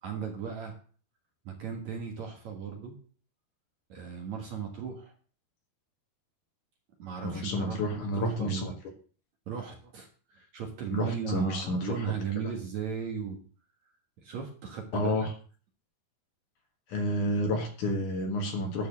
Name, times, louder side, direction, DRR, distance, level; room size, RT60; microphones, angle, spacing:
voice 1, 0.0-0.8 1.4-3.0 3.9-5.1 7.0-8.7 9.5-13.4 14.2-15.3, right 7 dB, 55° right, 2 dB, 2.5 m, -36 dB
voice 2, 7.2-8.7 10.9-12.1 14.9-15.3 16.9-18.9, left 1 dB, 60° left, 3 dB, 2.7 m, -30 dB
11.0 x 4.8 x 7.5 m, 0.41 s
omnidirectional pair, 4.5 m